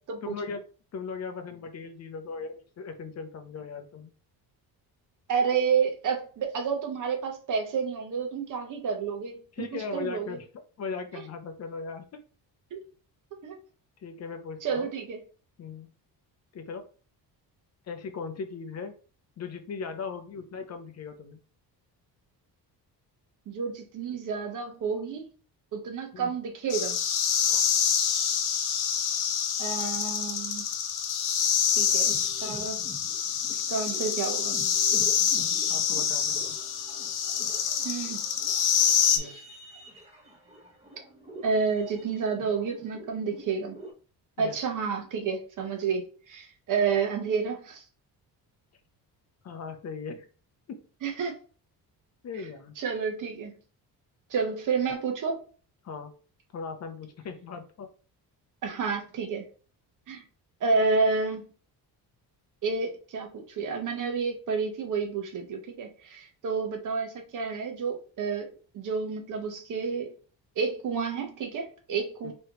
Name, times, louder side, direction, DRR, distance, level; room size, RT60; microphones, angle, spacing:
voice 1, 0.2-0.6 0.9-4.1 9.6-10.5 10.8-12.1 14.0-14.9 15.6-15.9 16.5-16.9 17.9-18.9 19.4-21.4 26.1-26.3 27.5-27.6 35.3-36.6 39.1-39.4 44.4-44.6 49.4-50.3 50.7-50.8 52.2-52.7 55.8-56.1 56.5-57.9 72.2-72.3, left 5 dB, 45° left, 7 dB, 0.6 m, -38 dB
voice 2, 5.3-9.7 9.9-10.4 12.7-12.8 13.4-13.6 14.6-15.2 23.5-25.3 25.7-27.0 29.6-30.7 31.8-32.8 33.5-34.5 37.8-38.2 39.1-39.3 41.4-43.8 44.4-47.8 51.0-51.3 52.8-53.5 54.3-55.4 58.6-59.5 60.1-60.2 60.6-61.4 62.6-68.5 68.7-70.1 70.6-72.3, right 5 dB, 55° right, 4 dB, 1.1 m, -30 dB
sound 1, 26.7-39.2, left 8 dB, 80° left, 0.9 m, -26 dB
sound 2, 31.8-43.9, equal, 15° right, 1.2 m, -47 dB
4.8 x 3.1 x 3.0 m, 0.39 s
cardioid pair, 160°, 38 cm